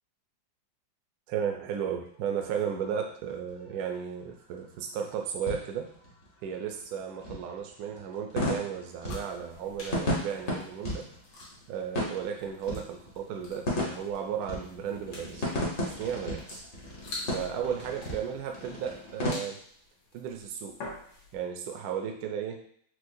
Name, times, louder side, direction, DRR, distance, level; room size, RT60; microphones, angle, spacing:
voice 1, 1.3-5.9 6.4-11.1 11.7-15.5 15.8-16.6 17.3-19.6 20.1-20.8 21.3-22.6, right 8 dB, 75° right, 2 dB, 0.8 m, -34 dB
sound 1, 2.1-19.3, left 1 dB, 45° left, 0.7 m, -36 dB
sound 2, 9.0-21.5, left 2 dB, 80° left, 1.6 m, -47 dB
4.4 x 2.0 x 2.6 m, 0.62 s
omnidirectional pair, 2.1 m